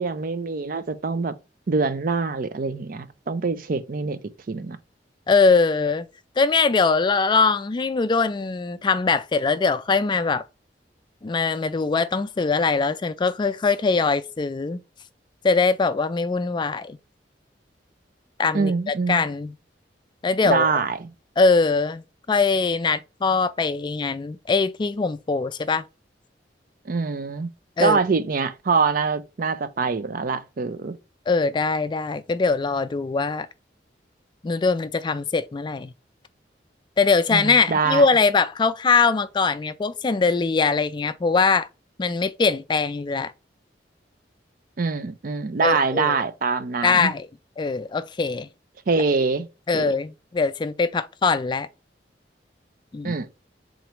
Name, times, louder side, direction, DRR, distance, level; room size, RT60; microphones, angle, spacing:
voice 1, 0.0-1.3 1.7-4.2 4.5-4.8 18.5-19.2 20.4-21.1 26.9-27.5 27.8-31.0 37.3-38.1 44.8-47.1 48.9-49.5 49.7-49.9 53.0-53.4, right 4 dB, 50° right, 0.5 m, -24 dB
voice 2, 5.3-6.1 6.4-10.4 11.2-14.8 15.4-17.0 18.4-19.5 20.2-20.7 21.4-22.0 22.3-25.8 27.8-28.0 31.3-33.5 34.4-35.9 37.0-41.7 42.0-43.3 45.6-46.2 46.8-47.3 47.6-48.5 49.7-51.7 52.9-53.2, left 4 dB, 25° left, 0.3 m, -22 dB
3.8 x 3.1 x 4.5 m
head